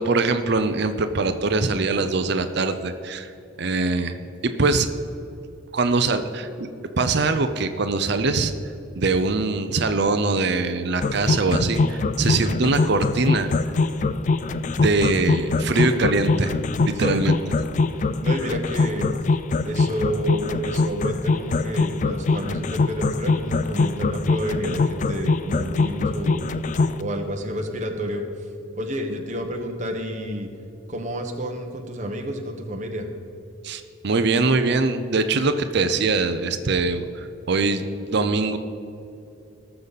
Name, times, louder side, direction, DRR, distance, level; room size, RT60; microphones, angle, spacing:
voice 1, 0.0-3.3 3.6-4.2 4.4-4.9 5.7-6.7 7.0-8.5 9.0-13.5 14.8-16.5 16.8-17.4 33.6-37.8 38.1-38.6, right 3 dB, 55° right, 9 dB, 0.6 m, -22 dB
sound 1, 11.0-27.0, left 3 dB, 35° left, 0.3 m, -22 dB
voice 2, 16.9-17.3 18.2-19.1 19.6-26.4 27.0-28.2 28.8-30.5 30.9-33.1, equal, 35° right, 2 dB, 1.0 m, -30 dB
18.5 x 6.9 x 4.1 m, 2.8 s
head